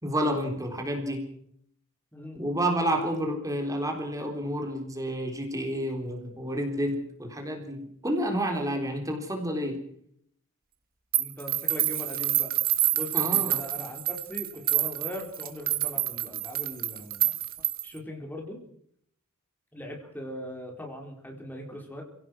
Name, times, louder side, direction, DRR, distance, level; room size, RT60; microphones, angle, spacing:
voice 1, 0.0-1.3 2.4-9.8 13.1-13.6, equal, 15° right, 2 dB, 3.8 m, -30 dB
voice 2, 2.1-2.5 11.2-12.5 12.9-17.4 17.8-18.6 19.7-22.0, left 1 dB, 10° left, 1 dB, 4.0 m, -40 dB
sound 1, 11.1-18.0, right 13 dB, 45° right, 1.9 m, -27 dB
29.0 x 17.5 x 6.2 m, 0.67 s
head